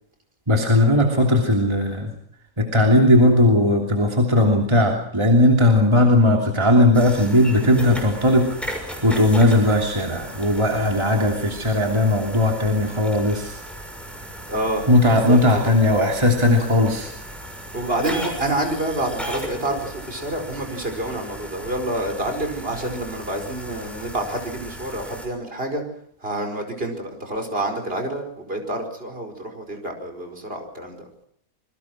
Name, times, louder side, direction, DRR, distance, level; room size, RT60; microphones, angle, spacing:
voice 1, 0.5-2.1 2.6-8.5 9.0-13.6 14.9-17.1, left 1 dB, 20° right, 1 dB, 3.1 m, -17 dB
sound 1, 6.9-25.3, equal, ahead, 6.4 m, -36 dB
voice 2, 14.5-15.7 17.7-25.8 26.2-31.2, right 1 dB, 40° right, 4 dB, 5.2 m, -28 dB
27.0 x 22.5 x 6.2 m, 0.66 s
omnidirectional pair, 1.5 m